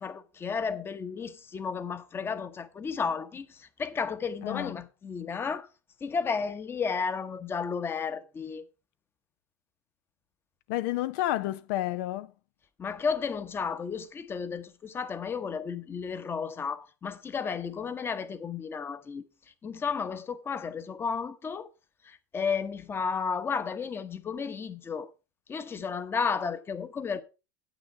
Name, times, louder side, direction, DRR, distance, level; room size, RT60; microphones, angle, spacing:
voice 1, 0.0-5.7 6.0-8.6 12.8-19.2 19.6-21.7 22.0-25.1 25.5-27.2, left 5 dB, 20° left, 0.9 m, -33 dB
voice 2, 4.4-4.8 10.7-12.3, left 15 dB, 70° left, 0.5 m, -30 dB
9.2 x 8.1 x 4.7 m
supercardioid pair, 125°, 10 cm